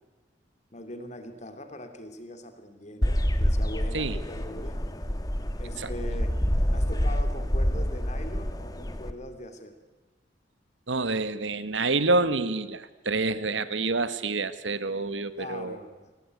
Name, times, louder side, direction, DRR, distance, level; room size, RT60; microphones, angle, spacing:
voice 1, 0.7-4.8 5.6-6.4 6.7-9.7 15.4-16.1, left 1 dB, 40° left, 8 dB, 2.8 m, -41 dB
sound 1, 3.0-9.1, equal, 20° left, 1.5 m, -27 dB
voice 2, 10.9-15.8, right 3 dB, 85° right, 13 dB, 1.5 m, -27 dB
27.0 x 19.0 x 9.4 m, 1.2 s
head